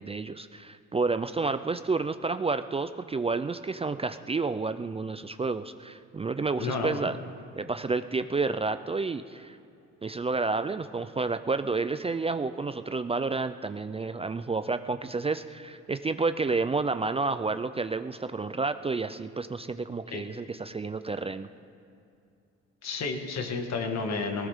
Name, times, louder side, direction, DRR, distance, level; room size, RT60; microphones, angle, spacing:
voice 1, 0.0-7.2 7.6-9.6 10.0-21.5, right 3 dB, 20° right, 10 dB, 0.4 m, -30 dB
voice 2, 6.6-7.1 20.1-20.2 22.8-24.5, left 4 dB, 60° left, 5 dB, 1.7 m, -31 dB
19.0 x 17.0 x 3.7 m, 2.5 s
cardioid pair, 90°, 30 cm